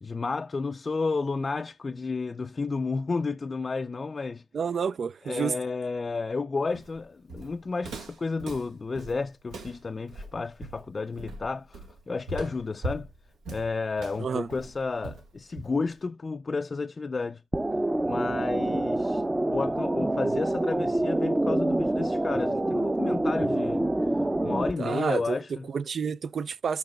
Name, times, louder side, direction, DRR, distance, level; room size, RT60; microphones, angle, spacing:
voice 1, 0.0-4.4 5.3-13.1 13.5-17.4 18.0-19.2 19.5-23.8 24.4-25.6, left 4 dB, 40° left, 0.4 m, -31 dB
voice 2, 4.5-5.5 14.2-14.5 24.8-25.4 25.7-26.8, right 6 dB, 55° right, 0.4 m, -29 dB
Walk footsteps, 6.7-16.0, right 2 dB, 85° right, 2.0 m, -41 dB
sound 1, 17.5-24.7, right 1 dB, 20° right, 0.6 m, -26 dB
14.0 x 5.9 x 2.2 m
supercardioid pair, 55°, 0 cm